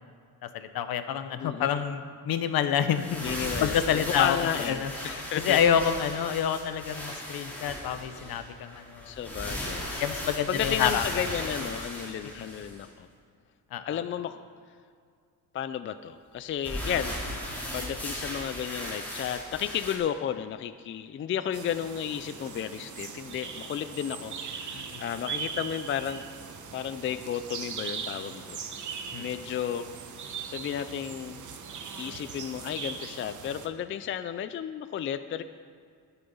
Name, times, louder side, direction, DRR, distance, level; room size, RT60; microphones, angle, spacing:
voice 1, 0.5-3.2 3.6-4.9 5.3-9.1 10.0-11.0 12.4-12.5 13.7-14.0 24.7-25.0 29.1-29.3, left 8 dB, 70° left, 10 dB, 1.0 m, -28 dB
voice 2, 1.4-1.8 3.2-5.6 9.1-10.0 10.5-13.1 13.8-14.3 15.5-17.1 17.7-24.3 24.6-26.2 26.7-28.6 29.2-29.9 30.5-31.4 32.0-35.4, left 9 dB, 35° left, 11 dB, 0.4 m, -33 dB
sound 1, 2.9-12.9 16.6-20.0, equal, 5° left, 3.7 m, -37 dB
sound 2, 21.5-33.7, right 6 dB, 50° right, 1.2 m, -40 dB
20.0 x 7.0 x 5.5 m, 2.2 s
cardioid pair, 140°, 38 cm